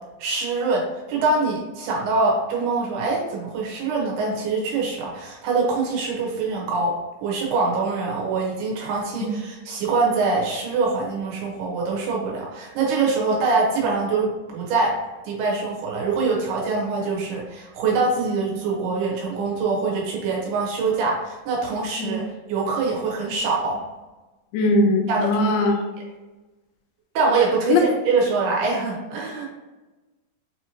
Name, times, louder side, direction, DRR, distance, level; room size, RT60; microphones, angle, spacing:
voice 1, 0.2-6.9 7.2-14.9 15.2-22.2 22.5-23.8 25.1-25.4 27.1-29.5, right 4 dB, 85° right, -3 dB, 3.2 m, -24 dB
voice 2, 24.5-25.7 27.7-27.8, left 2 dB, 80° left, 1 dB, 2.2 m, -19 dB
6.5 x 2.9 x 2.8 m, 1.1 s
omnidirectional pair, 4.5 m